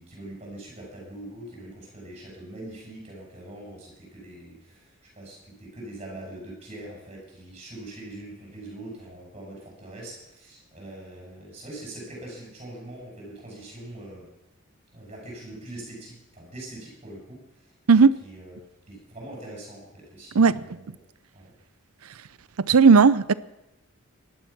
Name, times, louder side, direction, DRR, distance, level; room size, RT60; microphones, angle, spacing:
voice 1, 0.0-14.3 14.9-18.6 18.9-20.8 21.3-21.5, right 1 dB, 30° right, 7.6 m, -42 dB
voice 2, 22.6-23.3, right 5 dB, 80° right, 0.6 m, -15 dB
18.5 x 12.0 x 6.0 m
head